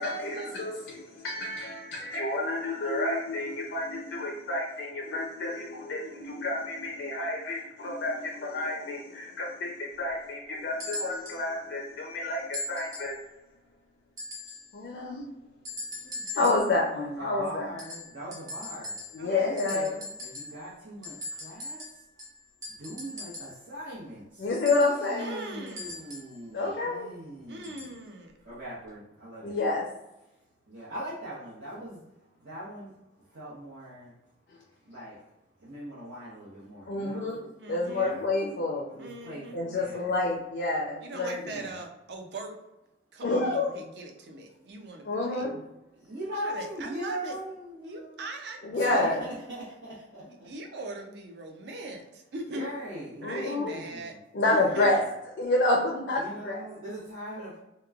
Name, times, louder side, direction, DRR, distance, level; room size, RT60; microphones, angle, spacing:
voice 1, 0.0-13.2 14.7-15.2 16.1-17.7 19.1-20.0 24.4-25.4 26.5-27.1 29.4-29.9 36.9-37.4 37.7-38.9 39.5-41.6 43.2-43.7 45.0-45.5 48.6-49.1 53.2-53.7 54.3-55.0 55.4-56.7, left 2 dB, 65° left, -1 dB, 0.4 m, -29 dB
sound 1, 10.8-11.4 12.5-13.2 14.2-14.7 15.6-16.7 17.8-19.3 19.6-20.6 21.0-23.6 24.6-26.4 27.6-28.0 28.9-29.0, left 2 dB, 20° right, 0.6 m, -40 dB
voice 2, 17.2-19.0 19.4-19.9 20.2-22.0 22.7-24.5 24.8-27.9 28.4-29.6 30.7-33.0 33.3-34.1 34.8-35.2 35.6-37.3 37.9-38.3 38.9-40.1 41.4-41.8 45.5-45.6 45.9-48.2 48.7-50.5 52.5-54.2 54.5-55.0 56.2-57.6, equal, 85° right, -11 dB, 0.9 m, -41 dB
voice 3, 25.2-25.9 27.5-28.3 37.6-38.2 39.0-39.6 41.0-42.5 43.1-45.5 46.3-47.3 47.8-49.2 50.3-52.7 53.2-54.1 54.5-54.9, right 2 dB, 60° right, 3 dB, 0.4 m, -41 dB
2.9 x 2.2 x 2.3 m, 0.95 s
head